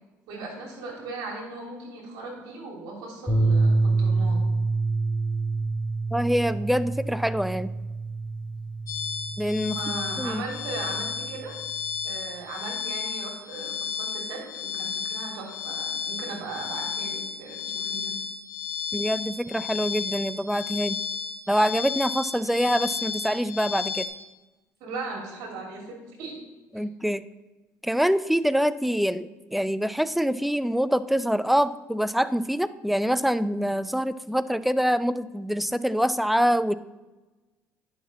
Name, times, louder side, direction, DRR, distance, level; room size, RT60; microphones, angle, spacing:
voice 1, 0.3-4.4 9.7-11.6 12.0-18.1 24.8-26.3, right 3 dB, 70° right, 0 dB, 2.6 m, -38 dB
sound 1, 3.3-11.7, right 3 dB, 20° left, 3.0 m, -27 dB
voice 2, 6.1-7.7 9.4-9.8 10.2-10.4 18.9-21.0 21.5-24.1 26.7-27.2 27.8-36.7, equal, ahead, 15 dB, 0.4 m, -25 dB
sound 2, 8.9-24.1, left 6 dB, 55° left, 2.7 m, -33 dB
9.9 x 6.2 x 4.1 m, 1.1 s
hypercardioid pair, 65°, 7 cm